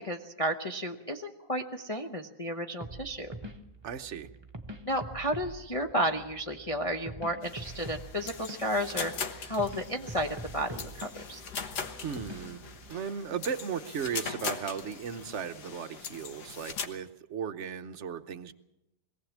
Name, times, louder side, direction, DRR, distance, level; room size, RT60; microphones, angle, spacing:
voice 1, 0.0-3.3 4.9-10.3 10.5-11.4, equal, 25° left, 3 dB, 0.7 m, -32 dB
sound 1, 2.8-12.9, right 1 dB, 20° right, 0.9 m, -45 dB
voice 2, 3.8-4.3 12.0-12.6 12.9-18.5, right 7 dB, 50° right, 9 dB, 1.0 m, -36 dB
sound 2, 7.4-16.9, left 6 dB, 65° left, 1.8 m, -40 dB
22.0 x 17.0 x 7.3 m, 0.91 s
omnidirectional pair, 1.9 m